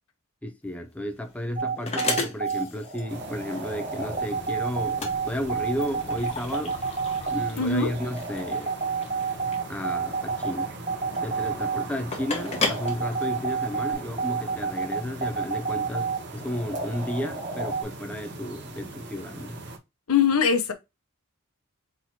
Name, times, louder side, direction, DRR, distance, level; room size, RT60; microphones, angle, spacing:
voice 1, 0.4-6.8 7.3-8.8 9.7-10.7 11.2-19.6, left 1 dB, 5° left, 0.5 m, -33 dB
sound 1, 0.6-13.9, left 3 dB, 30° left, 0.9 m, -35 dB
sound 2, 1.6-17.8, right 5 dB, 35° right, 1.9 m, -30 dB
sound 3, 3.1-19.8, right 2 dB, 50° right, 1.1 m, -41 dB
voice 2, 7.6-7.9 20.1-20.7, left 6 dB, 75° left, 0.8 m, -21 dB
4.0 x 3.0 x 4.1 m
head